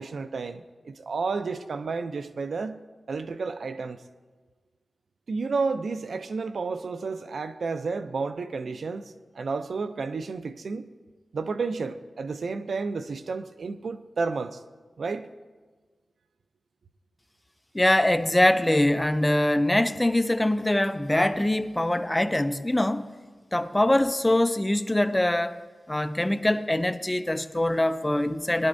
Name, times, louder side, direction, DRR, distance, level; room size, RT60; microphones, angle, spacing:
voice 1, 0.0-2.8 3.1-4.0 5.3-10.9 11.3-14.6 15.0-15.3, right 4 dB, 75° right, 0.5 m, -31 dB
voice 2, 17.7-23.1 23.5-25.6 25.9-28.7, left 1 dB, 15° left, 0.5 m, -23 dB
19.0 x 11.0 x 2.6 m
wide cardioid pair, 80°, 0 cm